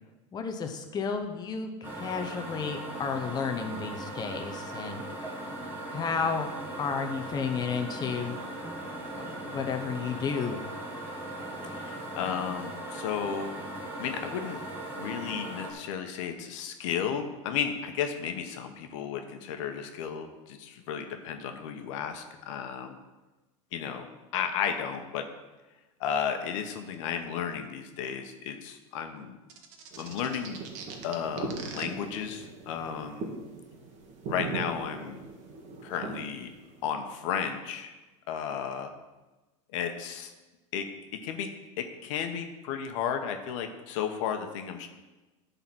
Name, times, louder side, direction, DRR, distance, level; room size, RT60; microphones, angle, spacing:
voice 1, 0.3-5.0 5.9-6.5 6.8-8.3 9.2-10.6, left 6 dB, 25° left, 4 dB, 0.8 m, -32 dB
sound 1, 1.8-15.7, right 1 dB, 15° right, 1.8 m, -39 dB
voice 2, 11.6-13.5 14.0-14.6 15.0-23.0 23.7-24.1 24.3-25.3 26.0-29.4 30.0-30.6 31.0-33.4 34.3-35.2 35.8-36.5 36.8-37.9 38.3-38.9 39.7-40.3 40.7-40.9 41.2-41.5 41.8-44.9, left 8 dB, 70° left, 6 dB, 1.1 m, -33 dB
sound 2, 29.5-31.8, right 7 dB, 65° right, 1.4 m, -43 dB
sound 3, 29.9-37.0, right 4 dB, 45° right, 1.8 m, -40 dB
10.5 x 4.1 x 6.1 m, 1.2 s
supercardioid pair, 120°, 17 cm